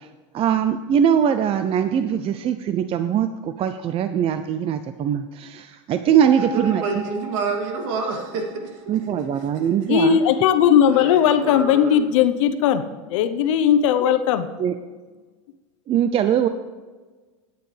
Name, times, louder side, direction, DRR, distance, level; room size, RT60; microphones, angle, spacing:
voice 1, 0.3-6.8 8.9-10.2 14.6-14.7 15.9-16.5, right 9 dB, 35° right, 10 dB, 0.5 m, -21 dB
sound 1, 6.2-9.2, right 2 dB, 15° right, 1.1 m, -37 dB
voice 2, 6.4-8.8 9.3-9.9 10.9-12.0, right 4 dB, 70° right, 1 dB, 2.8 m, -29 dB
voice 3, 9.9-12.8 13.1-14.5, left 9 dB, 75° left, 11 dB, 0.9 m, -18 dB
17.0 x 9.3 x 3.4 m, 1.3 s
supercardioid pair, 110°, 16 cm